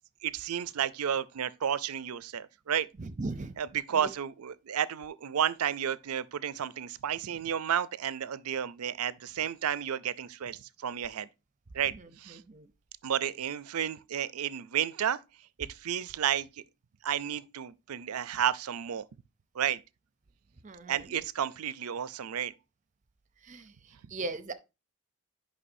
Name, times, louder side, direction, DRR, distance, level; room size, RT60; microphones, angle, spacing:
voice 1, 0.2-2.9 3.6-11.3 11.7-12.4 13.0-15.2 15.6-16.5 17.0-19.1 19.5-19.8 20.9-22.5, right 9 dB, 90° right, 0.5 m, -32 dB
voice 2, 3.0-3.6 3.9-4.1 11.9-12.7 20.6-21.3 23.4-24.5, right 2 dB, 35° right, 0.6 m, -39 dB
9.8 x 5.6 x 2.6 m
head